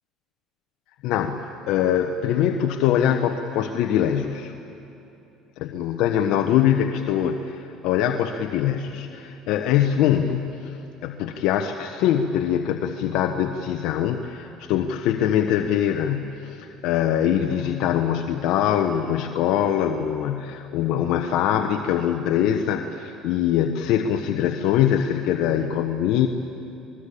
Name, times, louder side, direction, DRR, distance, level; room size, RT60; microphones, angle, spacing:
voice 1, 1.0-4.5 5.6-26.3, left 10 dB, 70° left, 5 dB, 1.1 m, -23 dB
27.0 x 20.5 x 8.5 m, 2.8 s
supercardioid pair, 105°, 0 cm